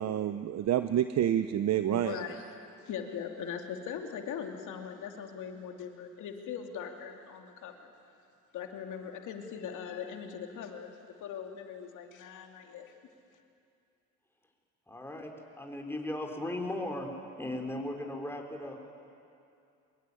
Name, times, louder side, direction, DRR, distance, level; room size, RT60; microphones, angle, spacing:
voice 1, 0.0-2.2, right 11 dB, 60° right, 10 dB, 0.8 m, -28 dB
voice 2, 1.9-7.9 8.5-12.9, left 7 dB, 80° left, 3 dB, 2.7 m, -40 dB
voice 3, 14.9-15.3 15.6-17.1 17.4-18.8, left 1 dB, 10° left, 2 dB, 4.4 m, -37 dB
24.0 x 21.5 x 9.8 m, 2.5 s
cardioid pair, 90°, 30 cm